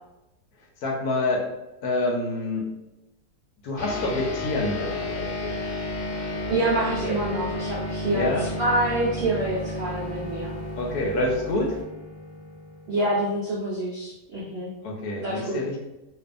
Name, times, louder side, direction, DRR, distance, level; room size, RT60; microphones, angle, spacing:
voice 1, 0.8-1.5 1.8-2.7 3.6-5.6 8.1-8.5 10.8-11.8 14.8-15.8, left 2 dB, 80° left, 0 dB, 1.2 m, -27 dB
sound 1, 3.8-13.5, left 2 dB, 40° left, 0.6 m, -33 dB
sound 2, 3.9-11.8, right 1 dB, 5° right, 0.3 m, -38 dB
voice 2, 6.5-8.3 8.6-10.5 12.9-14.7 15.2-15.6, right 1 dB, 80° right, -5 dB, 0.5 m, -26 dB
2.6 x 2.4 x 2.4 m, 0.97 s
omnidirectional pair, 1.7 m